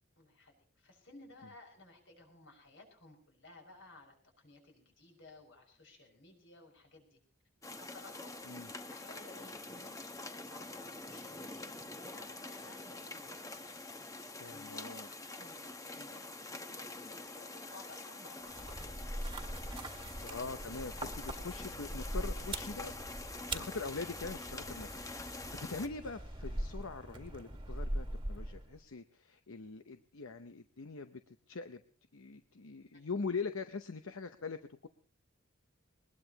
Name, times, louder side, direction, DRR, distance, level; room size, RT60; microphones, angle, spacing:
voice 1, 0.2-7.2 7.8-8.3 8.9-13.6 14.4-14.8 15.3-19.1 19.9-20.2, left 2 dB, 60° left, 2 dB, 5.8 m, -57 dB
sound 1, 7.6-25.9, left 2 dB, 15° left, 1.0 m, -46 dB
voice 2, 14.3-15.1 20.2-22.9 23.4-31.8 32.1-34.9, left 4 dB, 85° left, 9 dB, 0.9 m, -43 dB
sound 2, 18.4-28.8, right 1 dB, 25° right, 1.6 m, -42 dB
21.5 x 20.5 x 2.9 m, 0.41 s
head